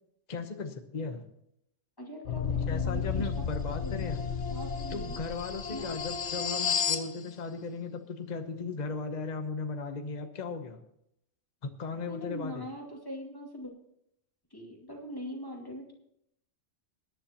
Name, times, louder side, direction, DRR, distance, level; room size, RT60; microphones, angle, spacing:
voice 1, 0.3-1.3 2.7-4.2 4.9-10.8 11.6-12.7, left 4 dB, 40° left, 6 dB, 1.0 m, -37 dB
voice 2, 2.0-3.4 3.8-5.2 5.7-5.9 12.1-13.7 14.5-15.9, equal, 20° left, -1 dB, 2.4 m, -42 dB
sound 1, 2.2-7.1, left 6 dB, 65° left, 1.2 m, -32 dB
21.0 x 10.5 x 2.9 m, 0.76 s
omnidirectional pair, 1.3 m